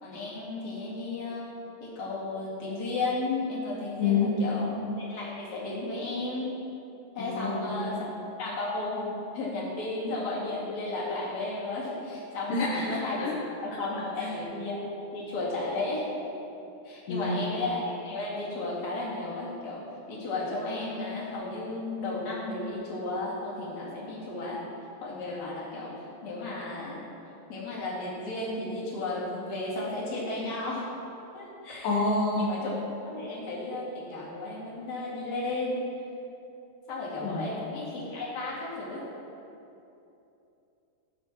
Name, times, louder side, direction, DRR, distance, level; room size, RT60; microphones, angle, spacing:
voice 1, 0.0-1.5 1.8-4.7 5.0-6.5 7.1-13.3 13.6-14.8 15.1-16.1 16.8-19.8 20.1-24.6 25.0-25.9 26.2-27.0 27.5-30.9 31.3-31.9 32.4-32.7 33.1-35.8 36.9-39.0, left 2 dB, 55° left, -7 dB, 3.4 m, -34 dB
voice 2, 4.0-4.7 7.2-8.0 12.5-13.3 14.2-14.3 17.1-17.6 31.8-32.5 37.2-37.5, left 3 dB, 70° left, -4 dB, 2.5 m, -28 dB
17.0 x 7.8 x 3.1 m, 2.8 s
omnidirectional pair, 4.1 m